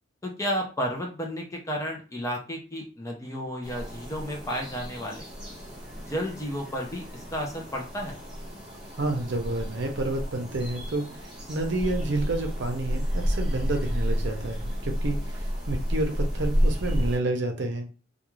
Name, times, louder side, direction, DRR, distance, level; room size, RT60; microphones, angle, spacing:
voice 1, 0.2-5.3 6.1-8.2, equal, 15° left, 1 dB, 0.5 m, -32 dB
sound 1, 3.6-17.2, equal, 5° right, 1.1 m, -31 dB
voice 2, 9.0-11.0 11.5-17.9, right 2 dB, 60° right, 3 dB, 0.6 m, -29 dB
2.4 x 2.3 x 3.0 m, 0.34 s
head